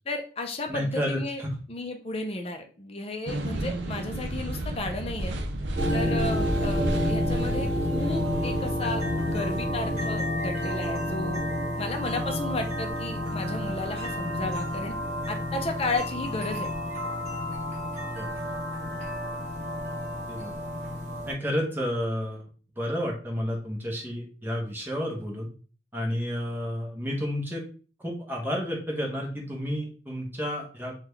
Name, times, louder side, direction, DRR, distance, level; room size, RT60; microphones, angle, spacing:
voice 1, 0.1-1.4 1.7-5.3 5.9-11.4 11.8-14.9 15.3-16.7, left 2 dB, 35° left, 5 dB, 0.5 m, -33 dB
voice 2, 0.7-1.5 18.1-18.3 20.3-20.5 21.3-22.5 22.8-25.5 25.9-27.6 28.0-30.9, equal, 10° right, -1 dB, 0.9 m, -31 dB
sound 1, 3.3-10.0, right 1 dB, 75° right, 0.5 m, -32 dB
sound 2, 5.8-21.3, left 1 dB, 40° right, 1.3 m, -30 dB
3.5 x 2.3 x 3.1 m, 0.38 s
head